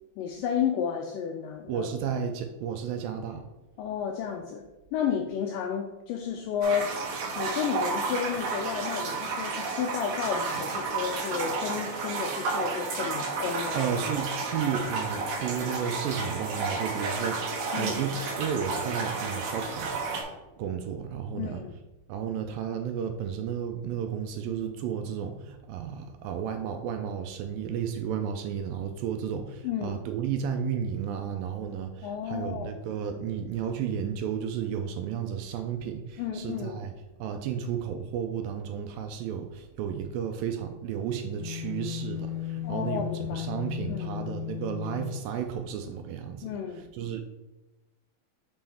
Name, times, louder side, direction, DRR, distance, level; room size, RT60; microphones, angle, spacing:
voice 1, 0.2-1.9 3.8-7.0 7.4-13.8 17.7-18.0 21.3-21.7 29.6-30.0 32.0-32.8 36.2-36.8 42.6-43.5 43.9-44.2 46.4-46.9, left 7 dB, 85° left, 4 dB, 1.9 m, -32 dB
voice 2, 1.7-3.5 12.1-12.2 13.7-20.0 20.6-21.6 22.1-36.9 37.2-46.5 46.9-47.2, right 8 dB, 80° right, 6 dB, 2.1 m, -33 dB
sound 1, 6.6-20.2, right 4 dB, 65° right, 1.9 m, -32 dB
sound 2, 41.4-45.2, left 12 dB, 45° left, 3.0 m, -35 dB
6.1 x 5.4 x 3.4 m, 1.0 s
omnidirectional pair, 4.4 m